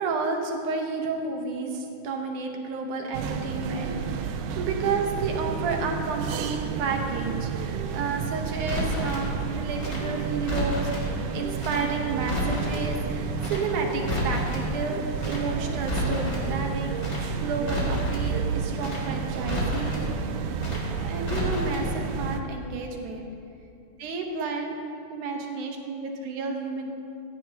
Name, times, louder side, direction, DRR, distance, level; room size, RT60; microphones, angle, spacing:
voice 1, 0.0-20.0 21.1-23.3 24.0-24.8 25.1-26.9, right 4 dB, 70° right, 2 dB, 2.6 m, -31 dB
sound 1, 3.1-22.4, right 6 dB, 85° right, 2.2 m, -31 dB
Crackle, 8.6-9.3 9.8-11.1 11.6-11.8 12.1-12.9 13.4-13.6 13.9-14.7 15.2-15.4 15.7-16.5 17.0-17.2 17.5-18.3 18.8-19.0 19.3-20.1 20.6-20.8 21.1-21.9 22.1-22.2, left 1 dB, 25° left, 3.3 m, -31 dB
17.0 x 15.0 x 3.0 m, 2.5 s
omnidirectional pair, 3.7 m